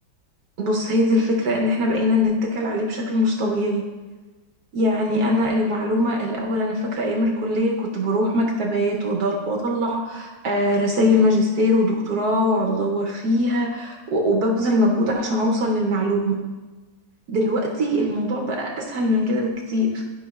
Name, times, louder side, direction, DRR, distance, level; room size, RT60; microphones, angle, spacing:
voice 1, 0.6-3.8 4.7-16.4 17.3-20.0, left 1 dB, 60° right, 0 dB, 1.2 m, -22 dB
12.0 x 5.6 x 2.3 m, 1.2 s
omnidirectional pair, 2.1 m